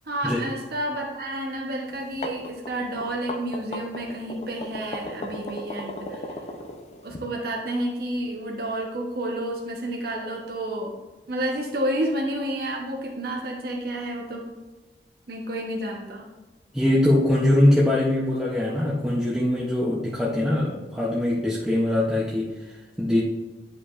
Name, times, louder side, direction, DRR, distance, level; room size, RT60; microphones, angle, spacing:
voice 1, 0.1-6.4 7.0-10.9 11.3-14.5 15.3-16.3, right 1 dB, 60° right, -1 dB, 1.0 m, -30 dB
sound 1, 1.9-7.2, left 1 dB, 40° left, 0.6 m, -35 dB
voice 2, 16.7-22.5 23.0-23.2, left 1 dB, 5° right, -6 dB, 0.7 m, -22 dB
10.0 x 5.0 x 2.5 m, 1.2 s
head